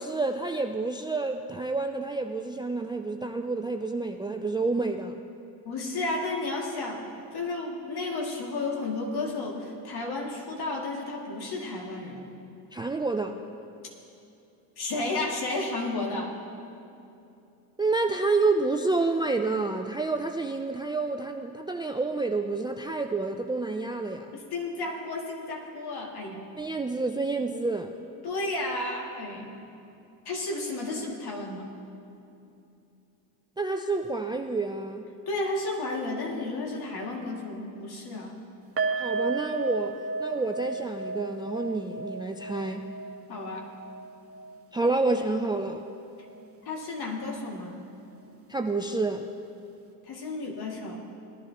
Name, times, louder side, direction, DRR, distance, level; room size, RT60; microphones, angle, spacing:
voice 1, 0.0-5.2 12.7-13.4 17.8-24.3 26.6-27.9 33.6-35.0 39.0-42.9 44.7-45.8 48.5-49.3, right 3 dB, 10° right, 5 dB, 0.4 m, -29 dB
voice 2, 5.6-7.0 7.3-12.2 14.8-16.3 24.3-26.5 28.2-29.5 30.2-31.7 35.3-38.4 43.3-43.7 46.7-47.8 50.0-51.0, left 2 dB, 50° left, -1 dB, 2.4 m, -32 dB
sound 1, 38.8-46.0 46.2-46.4 46.8-46.9, right 3 dB, 30° right, 1.4 m, -34 dB
19.5 x 11.0 x 3.0 m, 2.8 s
supercardioid pair, 70°, 47 cm